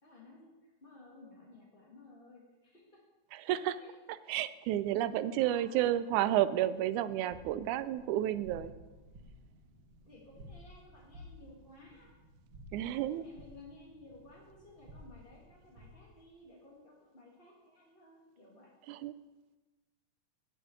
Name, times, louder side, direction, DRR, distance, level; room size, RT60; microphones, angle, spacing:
voice 1, 0.0-2.8 3.4-3.9 5.2-5.8 10.0-12.1 13.1-18.7, left 2 dB, 25° left, -4 dB, 1.2 m, -56 dB
voice 2, 3.3-3.8 4.3-8.7 12.7-13.2 18.9-19.1, right 12 dB, 85° right, 14 dB, 2.0 m, -31 dB
sound 1, 7.2-16.1, equal, 50° right, 2.0 m, -54 dB
11.5 x 6.0 x 8.2 m, 1.2 s
omnidirectional pair, 3.5 m